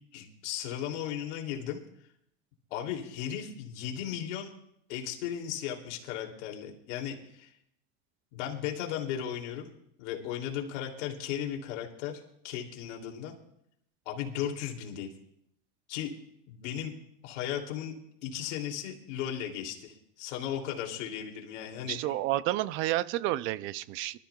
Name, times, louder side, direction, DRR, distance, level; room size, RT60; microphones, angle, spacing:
voice 1, 0.1-1.8 2.7-4.5 4.9-7.5 8.3-9.7 10.0-13.3 14.0-15.1 15.9-16.1 16.5-16.9 17.2-17.9 18.2-22.0, left 10 dB, 75° left, 1 dB, 2.9 m, -36 dB
voice 2, 21.8-24.2, right 15 dB, 35° right, 17 dB, 0.4 m, -30 dB
25.0 x 13.0 x 2.3 m, 0.75 s
supercardioid pair, 155°, 36 cm